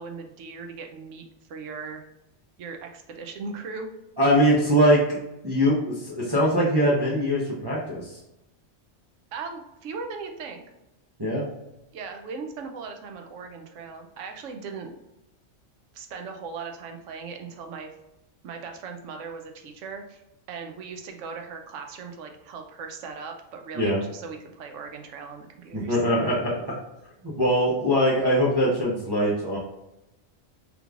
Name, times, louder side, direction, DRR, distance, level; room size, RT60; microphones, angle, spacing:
voice 1, 0.0-2.0 2.6-3.9 9.3-10.6 11.9-14.9 15.9-17.9 18.4-20.2 20.5-26.0, right 5 dB, 85° right, 4 dB, 0.9 m, -38 dB
voice 2, 4.2-5.2 5.4-8.2 11.2-11.5 23.7-24.0 25.7-26.6 27.2-29.6, equal, 25° right, -7 dB, 0.7 m, -22 dB
3.6 x 3.1 x 2.4 m, 0.91 s
omnidirectional pair, 1.2 m